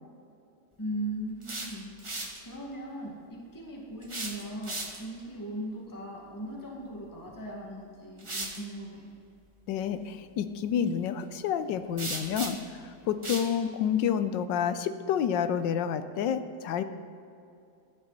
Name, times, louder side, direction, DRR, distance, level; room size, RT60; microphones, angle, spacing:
voice 1, 0.8-1.9 2.4-9.1, right 1 dB, 10° left, -2 dB, 1.7 m, -38 dB
sound 1, 1.2-2.4 4.0-5.2 7.3-7.4 8.2-8.6 12.0-12.8 13.2-13.5, right 2 dB, 20° right, 1.1 m, -37 dB
voice 2, 9.7-16.8, left 8 dB, 90° left, 11 dB, 1.4 m, -29 dB
15.5 x 11.5 x 4.1 m, 2.6 s
omnidirectional pair, 1.9 m